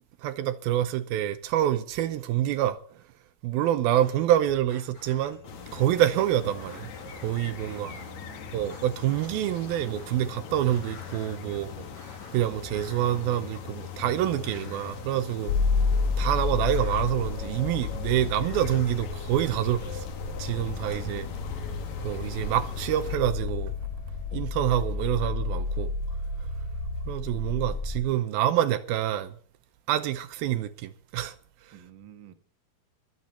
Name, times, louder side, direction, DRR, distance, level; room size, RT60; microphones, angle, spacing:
voice 1, 0.2-3.0 3.4-5.4 5.7-6.9 7.2-8.0 8.5-11.7 12.3-15.6 16.2-20.1 20.4-21.3 22.0-23.7 24.3-25.9 27.1-29.4 29.9-31.3 31.6-31.8, right 12 dB, 80° right, 2.6 m, -27 dB
sound 1, 3.9-12.8, left 1 dB, 35° left, 8.8 m, -50 dB
sound 2, 5.5-23.2, left 7 dB, 55° left, 2.7 m, -41 dB
voice 2, 7.7-8.6 11.8-11.9 15.4-15.5 20.8-22.0 24.3-24.4 27.7-27.8 31.7-32.3, right 7 dB, 55° right, 1.3 m, -49 dB
sound 3, 15.5-28.0, left 4 dB, 85° left, 4.3 m, -31 dB
23.5 x 9.5 x 4.3 m
omnidirectional pair, 4.4 m